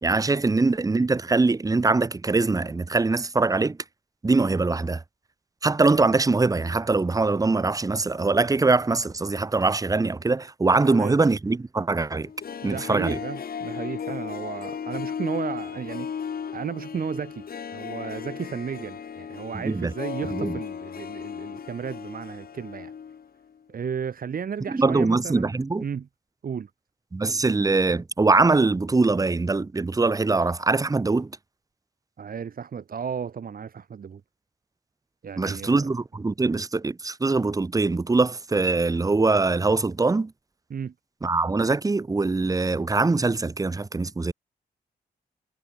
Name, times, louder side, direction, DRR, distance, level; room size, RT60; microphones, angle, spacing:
voice 1, 0.0-3.8 4.2-5.0 5.6-12.3 12.6-13.2 19.6-19.9 20.3-20.6 24.7-25.8 27.1-31.3 35.4-40.3 41.2-44.3, right 3 dB, 20° right, 1.1 m, -22 dB
voice 2, 10.8-11.2 12.6-16.1 16.5-17.5 17.7-22.9 23.7-25.5 25.8-26.1 26.4-26.7 32.2-34.2 35.2-35.9 40.7-40.9, right 7 dB, 60° right, 4.6 m, -33 dB
Harp, 12.2-23.3 23.5-23.6, left 7 dB, 60° left, 6.2 m, -35 dB
wide cardioid pair, 125°, 17 cm